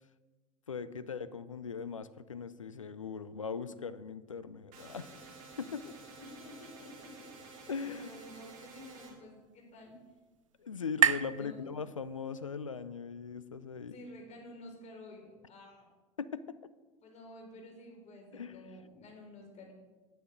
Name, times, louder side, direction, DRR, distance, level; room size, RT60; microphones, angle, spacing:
voice 1, 0.7-5.3 5.6-6.0 7.7-8.2 10.6-14.0 16.2-16.6 18.3-18.6, left 5 dB, 90° left, 15 dB, 0.5 m, -40 dB
sound 1, 4.7-9.1, right 4 dB, 55° right, 3.0 m, -51 dB
voice 2, 6.2-10.0 11.3-11.7 13.8-15.9 17.0-19.7, left 1 dB, 45° left, 1 dB, 3.8 m, -51 dB
sound 2, 8.7-12.4, right 9 dB, 80° right, 0.5 m, -34 dB
10.0 x 9.5 x 5.2 m, 1.2 s
figure-of-eight pair, 70°, 16 cm